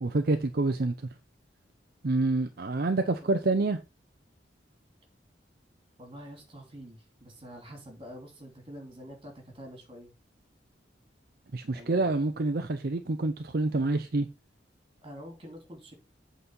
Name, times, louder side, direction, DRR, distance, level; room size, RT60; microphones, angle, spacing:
voice 1, 0.0-1.1 2.0-3.8 11.5-14.3, right 2 dB, 55° right, 0.6 m, -27 dB
voice 2, 2.8-3.4 6.0-10.1 11.7-12.2 15.0-15.9, equal, 30° right, 3.0 m, -47 dB
8.1 x 4.1 x 5.4 m
head